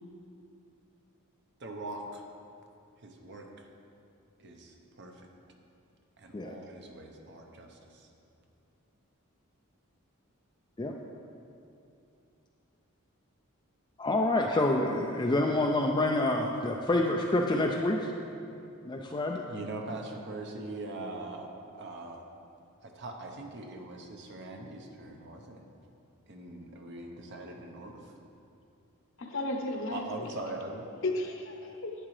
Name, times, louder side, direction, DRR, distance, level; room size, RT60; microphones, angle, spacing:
voice 1, 1.6-2.3 3.0-3.5 4.4-5.1 6.2-8.1 19.5-22.2 22.8-25.7 26.3-28.0 29.9-30.9, right 2 dB, 55° right, 2 dB, 0.9 m, -42 dB
voice 2, 14.0-18.0 18.9-19.4, left 2 dB, 20° left, 0 dB, 0.4 m, -27 dB
voice 3, 29.2-30.3 31.0-31.9, left 2 dB, 60° left, 2 dB, 0.9 m, -34 dB
11.0 x 8.8 x 3.2 m, 2.7 s
head